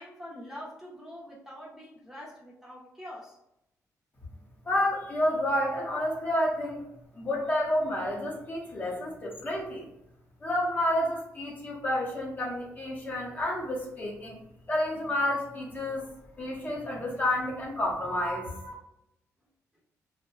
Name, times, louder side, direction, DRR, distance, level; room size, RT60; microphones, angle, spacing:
voice 1, 0.0-3.4, equal, 5° right, -5 dB, 0.6 m, -44 dB
voice 2, 4.6-6.8 7.1-9.9 10.4-14.4 14.7-16.1 16.4-18.7, left 1 dB, 30° left, -3 dB, 0.7 m, -30 dB
2.6 x 2.1 x 2.4 m, 0.83 s
cardioid pair, 120°, 6 cm